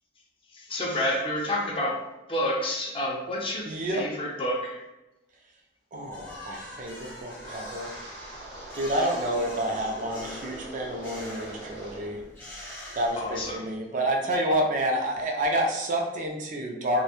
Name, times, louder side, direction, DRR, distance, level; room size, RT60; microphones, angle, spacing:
voice 1, 0.5-2.0 2.3-4.8 13.2-13.6, left 1 dB, 30° left, -2 dB, 0.5 m, -29 dB
voice 2, 3.7-4.1 5.9-7.9 8.7-12.2 13.0-17.0, right 1 dB, 45° right, 1 dB, 0.4 m, -29 dB
sound 1, 6.1-13.7, left 1 dB, 10° left, 0.9 m, -44 dB
Wind, 7.4-12.2 12.5-12.9 13.4-13.7, right 1 dB, 60° right, 0.9 m, -43 dB
2.8 x 2.1 x 2.4 m, 0.98 s
head